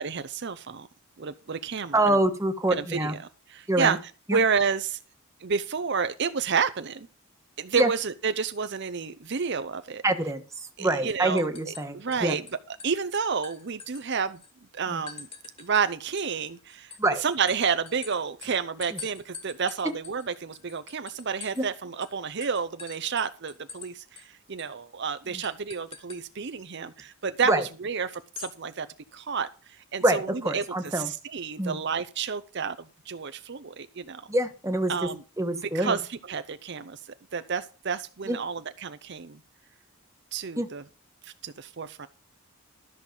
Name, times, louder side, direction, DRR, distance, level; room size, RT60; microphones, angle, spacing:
voice 1, 0.0-0.9 1.2-2.1 2.7-3.2 3.5-4.0 4.3-5.0 5.4-7.0 7.6-10.0 10.8-11.4 11.9-12.4 12.8-14.4 14.7-15.3 15.6-16.9 17.2-24.2 24.5-27.5 27.8-28.9 29.1-29.5 29.9-30.2 30.5-30.6 30.9-32.8 33.1-34.2 34.9-35.2 35.7-37.0 37.3-39.4 40.3-40.8 41.4-42.1, right 6 dB, 50° right, 0.6 m, -30 dB
voice 2, 1.9-3.2 3.7-4.0 4.3-4.4 7.8-7.9 10.0-12.4 14.9-15.0 17.0-17.2 18.9-19.0 21.6-21.7 25.3-25.4 27.5-27.7 30.0-31.1 31.6-31.8 34.3-35.1 35.4-36.0 38.2-38.4 40.6-40.7, right 1 dB, 15° right, 1.3 m, -26 dB
sound 1, 10.5-10.8 11.1-12.5 12.8-14.5 15.1-15.9 16.2-21.7 22.0-22.1 22.4-23.9 24.2-24.3 24.6-24.8 25.4-26.2 28.1-28.6, left 6 dB, 25° left, 2.1 m, -45 dB
13.0 x 6.6 x 5.3 m
head